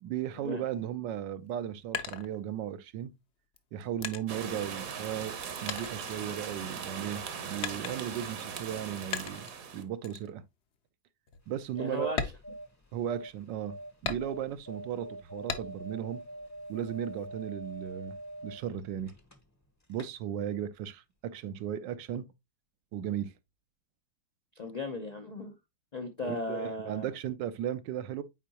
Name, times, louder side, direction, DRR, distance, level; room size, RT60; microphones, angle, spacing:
voice 1, 0.0-3.1 3.7-5.4 5.6-9.5 9.7-10.4 11.5-12.1 12.9-13.8 14.0-16.2 16.7-18.2 18.4-19.1 19.9-22.3 22.9-23.3 26.2-28.2, right 10 dB, 80° right, 1.3 m, -36 dB
sound 1, 1.4-2.9 3.5-5.4 5.7-6.8 7.6-8.3 9.1-9.6 10.0-10.3 10.7-10.8 11.3-11.4 12.1-13.3 14.1-14.7 15.5-16.0 16.4-17.3, left 6 dB, 55° left, 0.7 m, -39 dB
sound 2, 4.3-9.8, right 6 dB, 55° right, 1.2 m, -39 dB
sound 3, 11.4-19.6 19.9-20.1, right 1 dB, 15° left, 0.6 m, -45 dB
voice 2, 11.8-12.3 24.6-25.5 25.9-27.1, left 2 dB, 75° left, 0.3 m, -37 dB
8.1 x 4.6 x 2.8 m
omnidirectional pair, 1.9 m